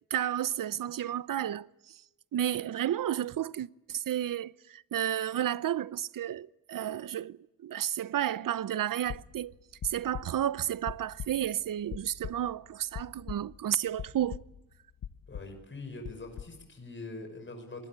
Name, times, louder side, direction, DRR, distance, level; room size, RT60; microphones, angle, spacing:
voice 1, 0.1-1.7 2.3-9.5 9.8-14.4, right 11 dB, 65° right, 0.8 m, -32 dB
sound 1, 9.1-13.7 14.0-14.7 15.0-15.6 16.0-16.6, left 9 dB, 70° left, 1.3 m, -42 dB
voice 2, 15.3-17.9, left 2 dB, 35° left, 5.7 m, -43 dB
25.0 x 21.0 x 8.8 m
cardioid pair, 95°, 35 cm